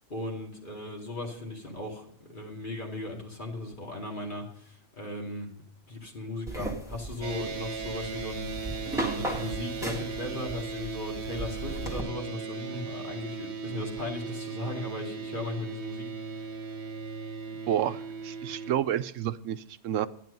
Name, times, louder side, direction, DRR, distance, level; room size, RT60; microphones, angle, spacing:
voice 1, 0.1-5.5 5.9-8.5 8.8-16.1, left 1 dB, 40° left, -1 dB, 2.6 m, -37 dB
sound 1, 6.5-12.0, right 1 dB, ahead, 1.9 m, -37 dB
sound 2, 7.2-18.7, right 4 dB, 60° right, 1.4 m, -37 dB
voice 2, 17.7-20.1, right 11 dB, 80° right, 12 dB, 1.0 m, -30 dB
12.0 x 9.4 x 5.2 m, 0.71 s
omnidirectional pair, 1.3 m